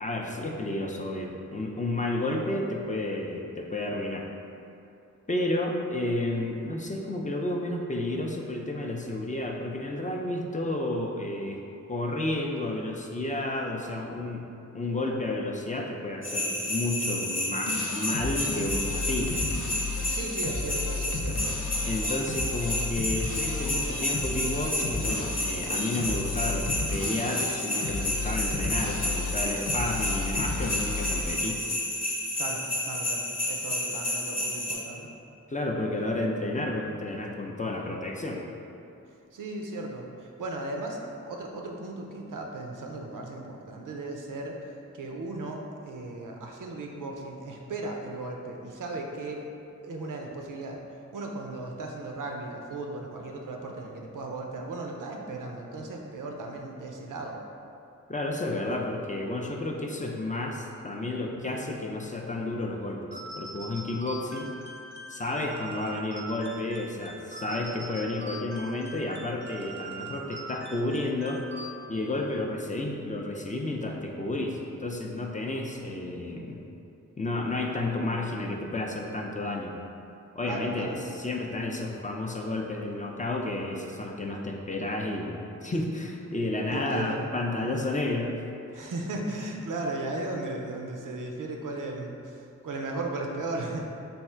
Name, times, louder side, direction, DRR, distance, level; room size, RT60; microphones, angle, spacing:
voice 1, 0.0-4.3 5.3-11.6 11.9-14.5 14.7-19.5 21.9-31.6 35.5-38.4 58.1-63.0 63.3-64.5 65.1-71.4 71.9-76.6 77.2-79.8 80.3-88.4 88.7-88.9, left 2 dB, 25° left, 0 dB, 0.4 m, -31 dB
sound 1, 16.2-34.7, left 1 dB, 55° left, 0.8 m, -31 dB
sound 2, 17.7-31.5, left 3 dB, 80° left, 0.5 m, -33 dB
voice 2, 20.1-21.6 32.4-35.1 39.3-44.6 44.9-49.5 49.8-50.8 51.1-57.4 80.5-81.0 86.7-87.2 88.7-93.9, right 2 dB, 90° right, 1 dB, 0.5 m, -36 dB
sound 3, 63.1-72.1, right 1 dB, 35° right, 0.5 m, -42 dB
3.4 x 2.4 x 4.3 m, 2.6 s
wide cardioid pair, 70°, 31 cm